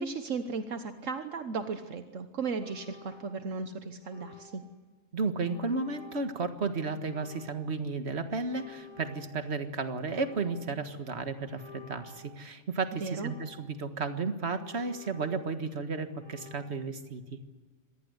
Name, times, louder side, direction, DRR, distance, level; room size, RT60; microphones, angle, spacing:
voice 1, 0.0-4.6 13.0-13.3, right 4 dB, 75° right, 8 dB, 1.5 m, -35 dB
sound 1, 2.6-3.6 4.0-4.8 5.4-6.4 7.0-7.9 8.4-9.7 10.0-10.8 11.4-12.5 13.0-13.9 14.5-15.7 16.1-16.7, left 5 dB, 75° left, 2.9 m, -53 dB
voice 2, 5.1-17.4, right 4 dB, 55° right, 8 dB, 1.9 m, -33 dB
26.0 x 19.0 x 8.0 m, 1.3 s
omnidirectional pair, 1.3 m